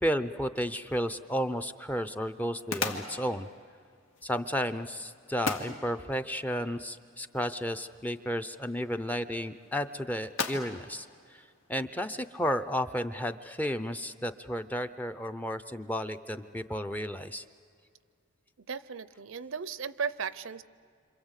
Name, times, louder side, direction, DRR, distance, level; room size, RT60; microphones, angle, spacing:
voice 1, 0.0-3.5 4.2-11.1 11.7-17.4, equal, 10° left, 9 dB, 0.6 m, -32 dB
sound 1, 0.5-12.2, left 4 dB, 80° left, 2.0 m, -42 dB
voice 2, 18.7-20.6, right 6 dB, 70° right, 16 dB, 0.6 m, -36 dB
27.5 x 26.5 x 8.2 m, 2.3 s
head